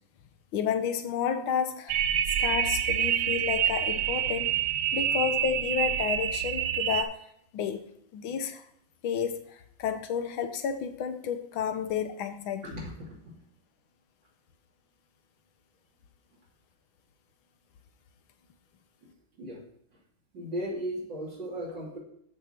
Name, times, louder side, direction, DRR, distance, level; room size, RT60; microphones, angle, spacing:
voice 1, 0.5-2.0 2.4-4.5 4.9-7.2 7.5-7.8 8.1-8.6 9.0-12.6, left 7 dB, 75° left, 1.6 m, -31 dB
sound 1, 1.9-7.0, right 10 dB, 75° right, 1.2 m, -27 dB
voice 2, 12.7-13.2 19.0-19.1 19.4-19.6 19.9-20.0 20.3-22.0, equal, 55° right, 3.4 m, -36 dB
13.5 x 5.0 x 4.4 m
omnidirectional pair, 2.3 m